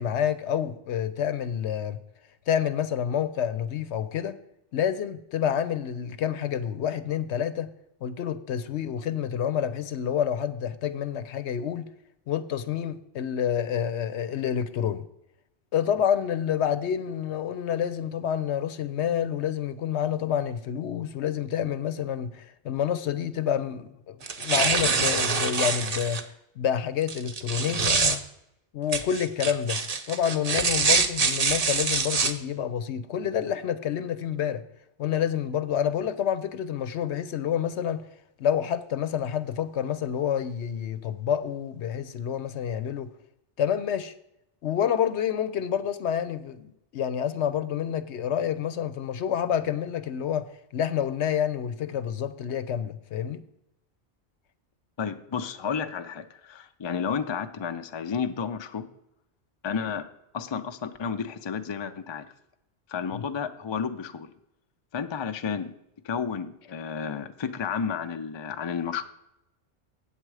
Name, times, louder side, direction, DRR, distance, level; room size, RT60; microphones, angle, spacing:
voice 1, 0.0-2.0 2.5-4.4 4.7-7.7 8.0-11.9 12.3-15.1 15.7-26.2 26.6-28.2 28.7-29.8 30.1-34.6 35.0-38.1 38.4-43.1 43.6-44.1 44.6-53.4 63.1-63.3, left 9 dB, 80° left, 0.9 m, -28 dB
sound 1, 24.2-26.2 27.1-28.2 28.9-32.3, right 4 dB, 40° right, 0.7 m, -25 dB
voice 2, 55.0-58.9 59.6-60.1 60.3-62.3 62.9-64.3 64.9-65.7 66.0-69.0, left 6 dB, 40° left, 0.4 m, -31 dB
8.4 x 7.7 x 4.8 m
omnidirectional pair, 1.2 m